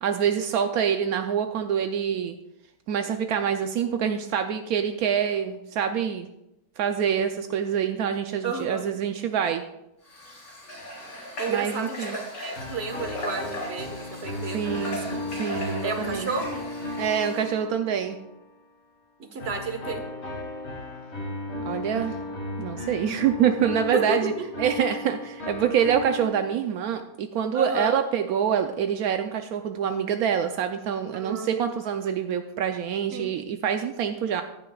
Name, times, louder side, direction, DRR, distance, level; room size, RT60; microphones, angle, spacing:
voice 1, 0.0-2.4 2.9-6.3 6.8-9.6 11.5-12.2 14.5-15.0 15.4-16.3 17.0-18.2 21.6-22.2 22.6-24.3 24.6-34.4, right 8 dB, 80° right, 6 dB, 1.1 m, -26 dB
voice 2, 8.4-8.8 11.4-15.2 15.8-16.6 19.2-20.0 23.9-24.0 24.4-24.5 27.5-27.9 31.1-31.7 33.1-33.3, right 4 dB, 45° right, 5 dB, 1.5 m, -32 dB
Water / Water tap faucet, 10.0-17.6, equal, 70° left, 3.5 m, -38 dB
sound 1, 12.5-18.4 19.4-26.8, left 2 dB, 45° left, 2.0 m, -35 dB
14.5 x 11.0 x 2.3 m, 0.89 s
omnidirectional pair, 1.5 m